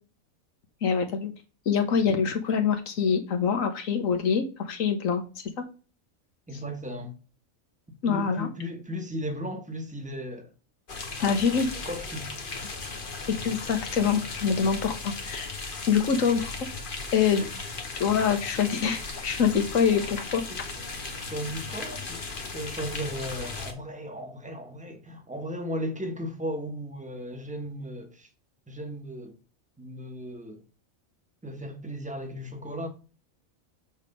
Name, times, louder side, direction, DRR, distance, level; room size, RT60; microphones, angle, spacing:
voice 1, 0.8-1.3 1.6-5.5 8.0-8.5 11.2-11.7 13.3-15.6 15.9-16.4 17.1-17.4 18.0-20.4, left 6 dB, 70° left, 1.6 m, -25 dB
voice 2, 6.5-7.1 8.1-10.5 11.9-12.5 17.4-17.5 20.5-20.6 21.3-28.3 28.7-29.4 29.8-30.6 31.4-32.9, equal, 5° right, 1.1 m, -36 dB
sound 1, 10.9-23.7, left 3 dB, 40° left, 1.3 m, -37 dB
7.3 x 3.2 x 5.3 m
omnidirectional pair, 1.4 m